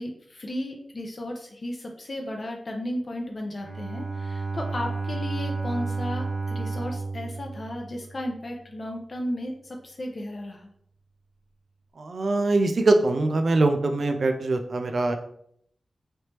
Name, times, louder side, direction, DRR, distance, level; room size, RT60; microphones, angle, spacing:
voice 1, 0.0-10.7, left 1 dB, 45° left, 1 dB, 0.4 m, -34 dB
Bowed string instrument, 3.6-8.4, right 3 dB, 75° right, 0.8 m, -32 dB
voice 2, 12.0-15.1, right 2 dB, 60° right, 6 dB, 0.4 m, -23 dB
3.2 x 3.0 x 2.9 m, 0.69 s
wide cardioid pair, 120°, 0 cm